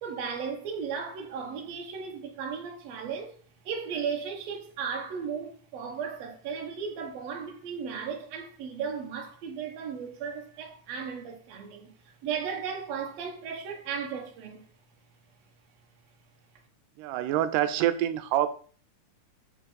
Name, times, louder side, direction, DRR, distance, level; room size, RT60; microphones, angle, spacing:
voice 1, 0.0-3.3 3.7-14.7, right 6 dB, 60° right, 2.1 m, -35 dB
voice 2, 17.0-18.5, right 12 dB, 90° right, 2.2 m, -26 dB
7.4 x 5.7 x 4.1 m
omnidirectional pair, 3.7 m